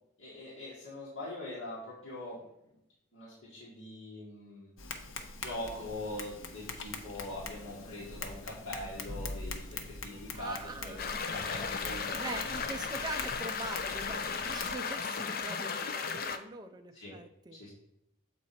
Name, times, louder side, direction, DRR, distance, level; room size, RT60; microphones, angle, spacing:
voice 1, 0.2-2.5 3.1-4.7 5.4-12.4 16.9-17.2 17.5-17.7, left 1 dB, 65° left, -9 dB, 1.8 m, -42 dB
Tap, 4.8-14.7, left 3 dB, 80° left, 0.8 m, -43 dB
voice 2, 10.3-11.5 12.1-17.6, right 3 dB, 20° right, 6 dB, 0.4 m, -43 dB
sound 1, 11.0-16.4, left 5 dB, 45° left, 0.4 m, -35 dB
7.4 x 4.4 x 4.2 m, 0.83 s
head